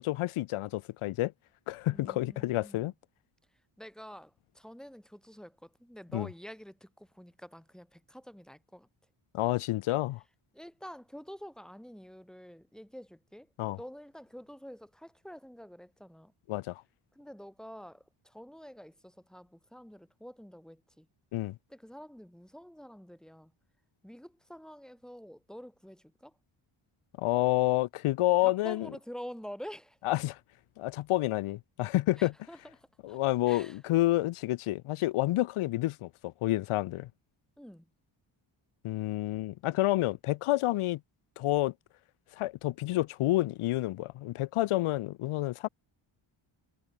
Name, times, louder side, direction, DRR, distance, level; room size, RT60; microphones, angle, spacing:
voice 1, 0.0-1.3 1.7-2.9 6.1-6.3 9.3-10.2 13.6-13.8 16.5-16.8 21.3-21.6 27.2-28.9 30.0-30.4 30.8-32.3 33.0-37.1 38.8-41.0 41.4-41.7 42.4-45.7, left 16 dB, 85° left, 0.7 m, -29 dB
voice 2, 1.9-2.9 3.8-8.9 10.5-13.5 13.8-16.3 17.1-21.1 21.7-23.5 24.0-26.3 28.4-30.0 32.2-33.2 33.5-33.8 37.6-37.9, equal, ahead, 7.8 m, -48 dB
wide cardioid pair, 150°, 49 cm